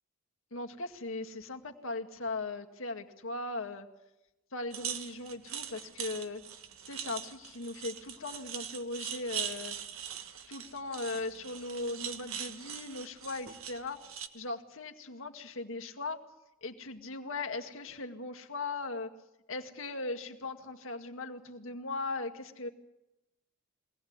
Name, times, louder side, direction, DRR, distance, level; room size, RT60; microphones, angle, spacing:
voice 1, 0.5-3.9 4.5-6.4 6.8-9.8 10.5-14.0 14.3-16.2 16.6-19.1 19.5-22.7, left 3 dB, 70° left, 4 dB, 2.1 m, -38 dB
sound 1, 4.7-14.3, right 8 dB, 80° right, 1.7 m, -41 dB
23.5 x 18.0 x 9.5 m, 0.94 s
head